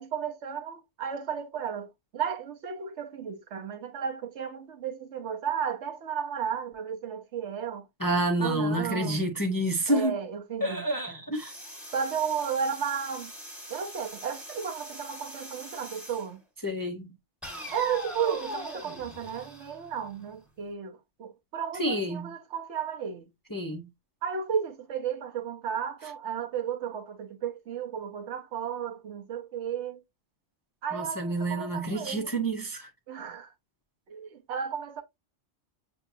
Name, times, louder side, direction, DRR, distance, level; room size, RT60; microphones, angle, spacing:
voice 1, 0.0-7.9 8.4-9.2 9.9-10.8 11.9-13.3 13.7-16.4 17.7-23.3 24.2-30.0 30.8-32.3 33.1-33.5 34.1-35.0, right 7 dB, 70° right, 1.1 m, -33 dB
voice 2, 8.0-10.2 10.6-11.5 16.6-17.1 21.7-22.3 23.5-23.9 30.9-32.9, right 1 dB, 20° left, 0.6 m, -29 dB
sound 1, 11.3-16.3 17.4-20.3, equal, ahead, 1.2 m, -42 dB
7.0 x 2.7 x 2.6 m
omnidirectional pair, 1.3 m